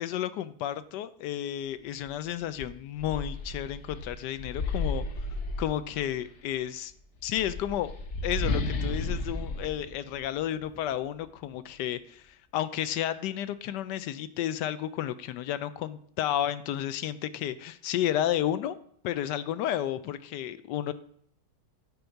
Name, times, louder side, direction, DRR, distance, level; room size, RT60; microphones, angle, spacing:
voice 1, 0.0-5.1 5.6-6.9 7.2-7.9 8.2-18.8 19.0-20.9, left 11 dB, 85° left, 13 dB, 1.2 m, -32 dB
sound 1, 2.6-6.2 7.2-10.8, left 2 dB, 50° left, 1.1 m, -33 dB
10.5 x 5.5 x 4.5 m, 0.65 s
omnidirectional pair, 1.8 m